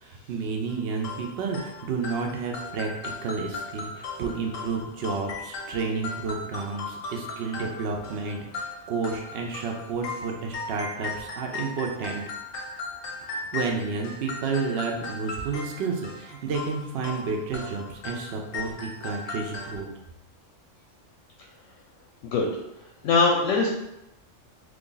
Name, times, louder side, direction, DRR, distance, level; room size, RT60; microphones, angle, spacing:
voice 1, 0.0-12.2 13.3-19.9, right 4 dB, 65° right, 1 dB, 0.7 m, -31 dB
sound 1, 0.7-19.8, left 3 dB, 55° left, 0.7 m, -37 dB
voice 2, 23.0-23.7, left 4 dB, 85° left, 0 dB, 0.9 m, -21 dB
3.2 x 2.4 x 3.8 m, 0.88 s
omnidirectional pair, 1.3 m